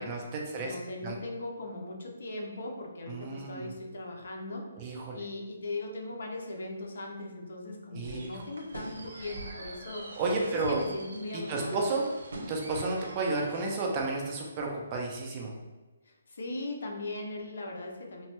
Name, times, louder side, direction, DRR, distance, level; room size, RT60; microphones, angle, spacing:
voice 1, 0.0-0.7 1.0-1.2 3.1-3.7 4.8-5.2 7.9-8.4 10.2-10.8 11.3-12.1 12.5-15.5, right 3 dB, 20° right, -1 dB, 0.3 m, -32 dB
voice 2, 0.5-11.9 16.1-18.3, left 2 dB, 60° left, 1 dB, 0.6 m, -39 dB
sound 1, 8.0-13.9, right 1 dB, 70° right, 0.6 m, -44 dB
3.0 x 2.1 x 2.9 m, 1.2 s
hypercardioid pair, 175°, 0 cm